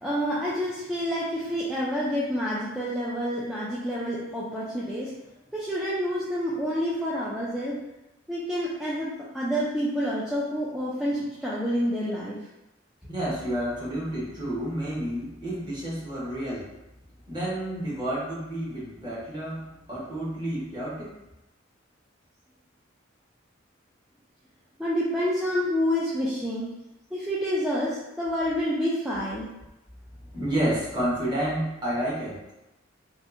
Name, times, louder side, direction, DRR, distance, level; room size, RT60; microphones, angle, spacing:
voice 1, 0.0-5.1 5.5-7.8 8.3-9.1 9.3-12.4 24.8-26.7 27.1-29.5, equal, 5° right, -8 dB, 0.3 m, -28 dB
voice 2, 13.1-16.7 17.3-21.1 30.3-32.4, right 1 dB, 25° right, -8 dB, 0.9 m, -30 dB
2.7 x 2.3 x 2.5 m, 0.95 s
head